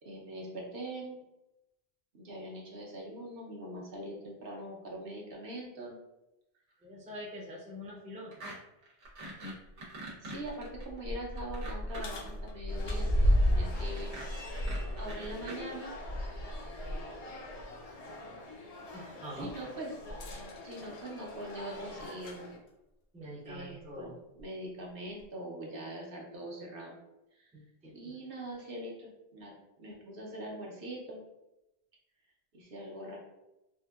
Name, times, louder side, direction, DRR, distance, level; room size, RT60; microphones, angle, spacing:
voice 1, 0.0-1.2 2.1-6.0 9.8-9.9 10.2-14.7 15.0-15.9 19.3-20.0 20.6-22.5 23.4-26.9 27.3-27.5 27.9-31.2 32.5-33.2, right 1 dB, 60° right, -2 dB, 0.8 m, -43 dB
voice 2, 6.8-8.3 18.9-19.5 23.1-24.1 27.5-28.1, equal, 10° right, -5 dB, 0.5 m, -45 dB
sound 1, 8.3-8.6 8.8-12.3 13.7-15.6, right 2 dB, 85° right, 1.1 m, -44 dB
sound 2, 9.1-9.2 9.7-9.8 10.3-17.0 17.5-17.6 20.1-22.5 23.5-23.6 24.4-24.5, equal, 75° left, 0.9 m, -33 dB
sound 3, 12.7-22.6, left 2 dB, 55° left, 0.4 m, -46 dB
3.6 x 2.5 x 2.3 m, 0.93 s
omnidirectional pair, 1.2 m